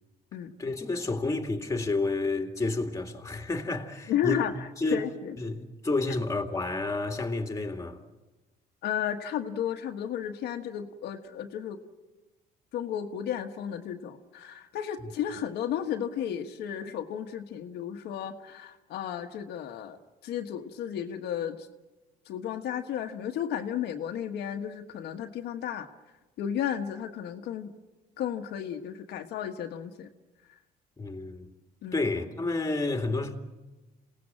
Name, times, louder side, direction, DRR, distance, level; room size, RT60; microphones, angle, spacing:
voice 1, 0.6-5.0 5.4-8.0 15.0-15.1 31.0-31.5 31.9-33.4, left 2 dB, 20° left, 2.3 m, -30 dB
voice 2, 4.1-5.3 8.8-11.8 12.7-21.7 22.3-25.9 26.4-27.7 28.2-30.1 31.8-32.0, left 9 dB, 75° left, 1.5 m, -33 dB
27.5 x 18.0 x 7.5 m
cardioid pair, 110°, 17 cm